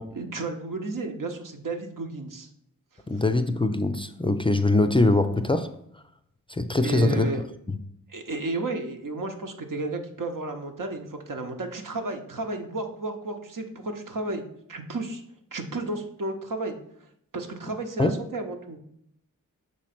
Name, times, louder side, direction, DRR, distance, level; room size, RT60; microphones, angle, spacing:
voice 1, 0.1-2.5 3.1-3.2 6.8-7.4 8.1-14.4 14.7-15.2 15.5-16.8 17.3-18.8, right 2 dB, 75° right, 0.9 m, -32 dB
voice 2, 3.1-5.7 6.5-7.3 7.7-7.8 18.0-18.1, left 2 dB, 15° left, 0.4 m, -22 dB
6.4 x 3.1 x 5.8 m
wide cardioid pair, 65°, 33 cm